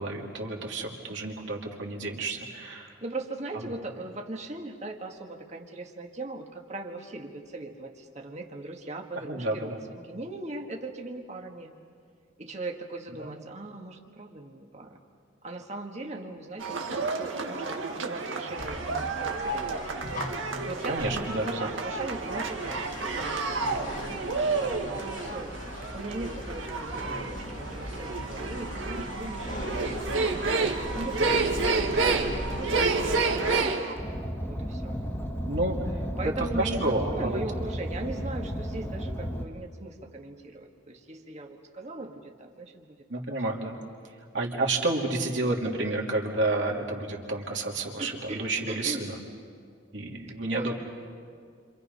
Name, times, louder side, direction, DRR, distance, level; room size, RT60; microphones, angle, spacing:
voice 1, 0.0-2.9 9.2-9.8 13.2-13.4 20.9-21.7 35.4-37.4 43.1-43.8 44.3-49.1 49.9-50.7, right 2 dB, 70° right, 0 dB, 2.9 m, -30 dB
voice 2, 0.7-1.3 3.0-11.7 12.4-15.0 15.4-20.1 20.6-25.7 25.9-30.6 30.9-34.0 34.5-35.0 36.2-43.0 48.0-49.1 50.5-50.7, right 2 dB, 35° right, 2 dB, 1.7 m, -39 dB
sound 1, 16.6-33.9, right 4 dB, 90° right, 1.8 m, -30 dB
sound 2, 18.6-33.7, left 1 dB, 40° left, 1.7 m, -38 dB
Car, 33.9-39.4, equal, 10° left, 1.7 m, -33 dB
29.5 x 26.5 x 5.5 m, 2.1 s
head